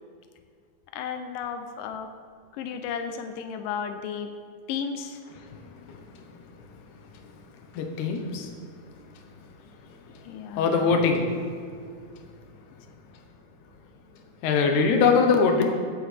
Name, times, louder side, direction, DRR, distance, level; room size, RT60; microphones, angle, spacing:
voice 1, 0.9-2.1 2.5-4.3 4.7-5.2 10.3-11.0, left 7 dB, 90° left, 7 dB, 2.3 m, -34 dB
voice 2, 7.7-8.5 10.6-11.2 14.4-15.7, left 5 dB, 70° left, 4 dB, 2.4 m, -21 dB
15.5 x 8.7 x 3.4 m, 2.2 s
omnidirectional pair, 3.7 m